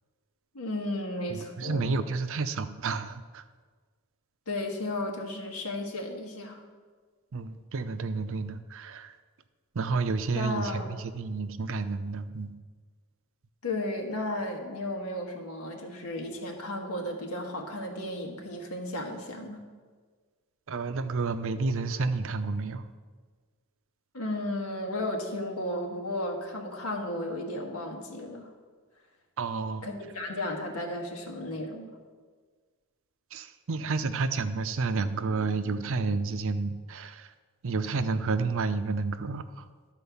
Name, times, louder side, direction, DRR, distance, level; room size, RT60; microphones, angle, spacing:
voice 1, 0.5-2.0 4.5-6.6 10.3-10.9 13.6-19.6 24.1-28.5 29.8-32.0, left 1 dB, 85° left, 2 dB, 1.5 m, -34 dB
voice 2, 1.3-3.4 7.3-9.1 9.7-12.5 20.7-22.8 29.4-29.9 33.3-37.3 37.6-39.6, right 4 dB, 60° right, 11 dB, 0.6 m, -30 dB
12.0 x 4.5 x 7.0 m, 1.5 s
head